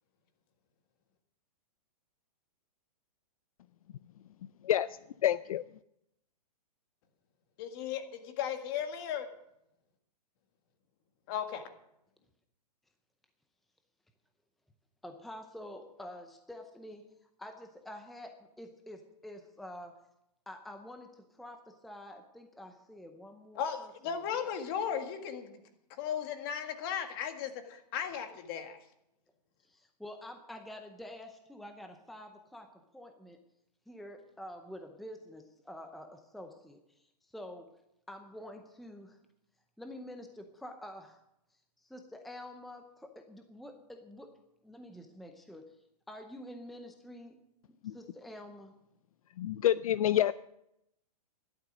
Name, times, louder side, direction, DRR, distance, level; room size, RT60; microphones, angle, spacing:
voice 1, 5.2-5.6 47.8-48.0 49.4-50.3, left 11 dB, 60° left, 16 dB, 0.4 m, -27 dB
voice 2, 7.6-9.2 11.3-11.6 23.5-25.6 26.0-28.8, left 8 dB, 35° left, 7 dB, 1.8 m, -36 dB
voice 3, 15.0-17.1 17.4-19.9 20.5-24.8 29.6-32.7 32.9-33.4 33.9-37.7 38.1-39.2 39.8-41.2 41.8-44.3 44.6-45.7 46.1-47.4 47.8-48.7, left 1 dB, ahead, 5 dB, 0.7 m, -48 dB
13.0 x 11.5 x 6.2 m, 0.81 s
hypercardioid pair, 160°, 20 cm